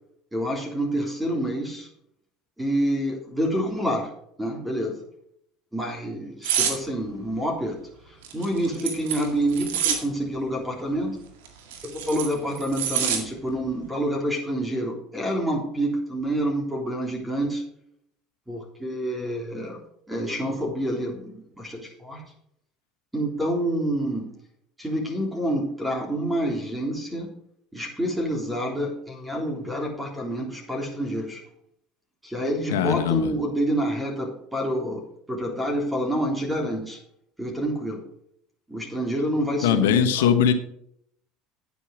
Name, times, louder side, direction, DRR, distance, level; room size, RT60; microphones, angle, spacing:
voice 1, 0.3-1.9 2.6-4.1 4.4-5.0 5.7-7.8 8.1-11.2 11.8-17.6 18.5-22.2 23.1-24.3 24.8-27.3 27.7-31.4 32.2-37.0 37.4-38.0 38.7-40.4, right 1 dB, 10° right, 0 dB, 3.5 m, -28 dB
sound 1, 6.4-6.8 8.2-10.0 11.5-13.2 13.6-13.9, right 8 dB, 85° right, 2.0 m, -26 dB
voice 2, 32.7-33.3 39.6-40.5, left 8 dB, 85° left, 7 dB, 1.2 m, -20 dB
9.3 x 8.6 x 5.0 m, 0.70 s
hypercardioid pair, 85°, 0 cm